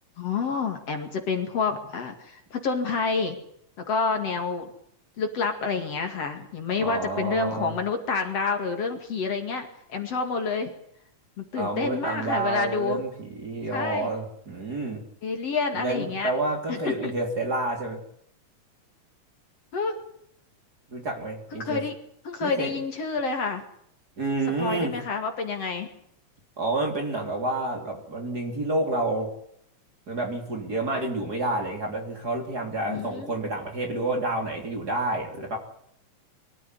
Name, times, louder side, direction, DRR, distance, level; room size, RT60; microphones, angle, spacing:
voice 1, 0.2-3.4 3.9-4.7 5.2-10.7 11.4-13.0 13.7-14.1 15.2-16.3 16.7-17.1 19.7-20.0 21.5-21.9 22.2-23.6 24.6-25.9 32.9-33.4, left 4 dB, 50° left, 5 dB, 3.0 m, -28 dB
voice 2, 6.8-7.8 11.5-15.0 15.7-18.0 20.9-21.8 22.4-22.7 24.2-24.9 26.6-29.3 30.1-35.6, right 2 dB, 30° right, 3 dB, 3.5 m, -29 dB
23.5 x 14.0 x 9.7 m, 0.72 s
omnidirectional pair, 3.7 m